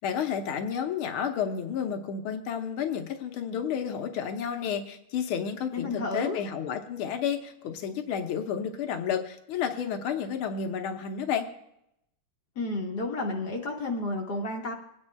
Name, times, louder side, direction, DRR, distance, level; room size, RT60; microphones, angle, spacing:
voice 1, 0.0-11.5, left 7 dB, 85° left, 5 dB, 1.8 m, -31 dB
voice 2, 5.7-6.4 12.6-14.7, left 2 dB, 60° left, 1 dB, 1.4 m, -31 dB
27.0 x 9.7 x 2.3 m, 0.81 s
omnidirectional pair, 2.3 m